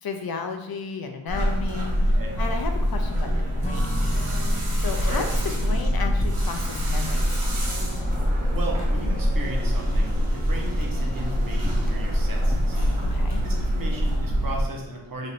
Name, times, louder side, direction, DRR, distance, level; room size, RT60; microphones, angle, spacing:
voice 1, 0.0-4.0 4.7-5.2 5.6-7.4 13.0-13.4, left 4 dB, 50° left, 5 dB, 0.5 m, -33 dB
sound 1, 1.3-14.6, equal, 85° right, 1.1 m, -24 dB
voice 2, 2.0-2.4 5.0-5.3 8.5-13.1 13.4-15.3, right 2 dB, 45° right, -1 dB, 0.9 m, -36 dB
Strum, 3.6-8.3, right 1 dB, 15° left, 0.9 m, -40 dB
sound 2, 5.3-14.1, equal, 20° right, 0.7 m, -35 dB
3.2 x 2.6 x 4.0 m, 1.0 s
wide cardioid pair, 65°, 50 cm